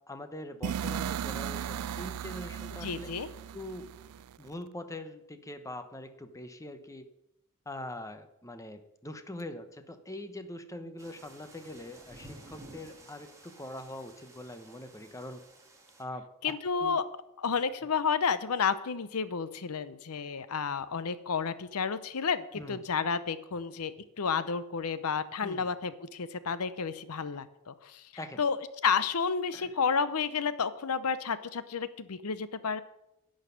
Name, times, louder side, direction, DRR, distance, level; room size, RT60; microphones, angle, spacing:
voice 1, 0.1-3.1 3.5-3.9 4.4-7.1 7.7-15.4 16.0-17.0 22.5-23.0 25.4-25.7 28.2-28.4 29.5-29.7, left 1 dB, 15° left, 8 dB, 0.9 m, -43 dB
sound 1, 0.6-4.5, right 8 dB, 90° right, 0.4 m, -36 dB
voice 2, 2.8-3.3 16.4-17.0 17.4-28.0 28.4-28.6 28.8-32.8, left 6 dB, 75° left, 14 dB, 0.7 m, -31 dB
sound 2, 11.0-16.0, right 2 dB, 15° right, 2.1 m, -53 dB
11.0 x 6.4 x 9.2 m, 0.86 s
head